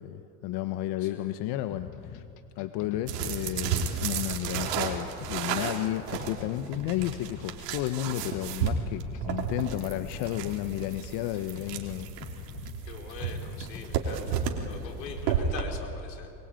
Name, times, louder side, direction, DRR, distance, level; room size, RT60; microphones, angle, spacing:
voice 1, 0.0-2.2 2.6-12.1, left 13 dB, 55° left, 10 dB, 1.2 m, -32 dB
voice 2, 1.0-1.3 12.8-16.3, left 6 dB, 85° left, 3 dB, 4.1 m, -43 dB
sound 1, 1.7-15.6, left 9 dB, 35° left, 1.6 m, -45 dB
sound 2, 3.1-15.6, right 7 dB, 70° right, 3.3 m, -33 dB
22.5 x 22.5 x 9.1 m, 2.5 s
hypercardioid pair, 100°, 49 cm